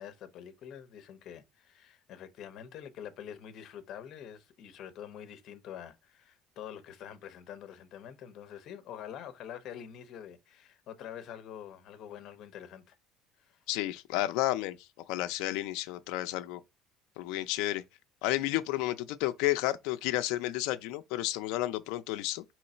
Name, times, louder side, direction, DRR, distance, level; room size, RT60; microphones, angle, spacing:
voice 1, 0.0-12.9 13.4-13.6, left 9 dB, 50° left, 0.7 m, -46 dB
voice 2, 13.7-14.8 15.1-16.6 17.2-17.8 18.2-22.4, left 16 dB, 90° left, 0.4 m, -31 dB
3.8 x 3.1 x 4.3 m
cardioid pair, 155°, 0 cm